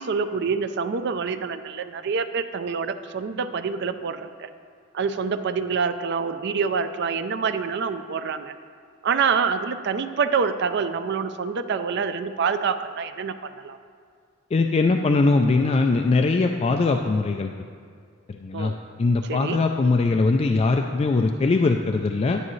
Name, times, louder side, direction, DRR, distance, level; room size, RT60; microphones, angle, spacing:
voice 1, 0.0-4.5 4.9-8.5 9.0-13.8 18.5-18.7 19.3-19.6, right 5 dB, 60° right, 9 dB, 0.4 m, -26 dB
voice 2, 14.5-17.5 18.3-18.7 19.0-22.4, left 3 dB, 30° left, 4 dB, 0.3 m, -21 dB
9.9 x 9.8 x 3.1 m, 2.1 s
head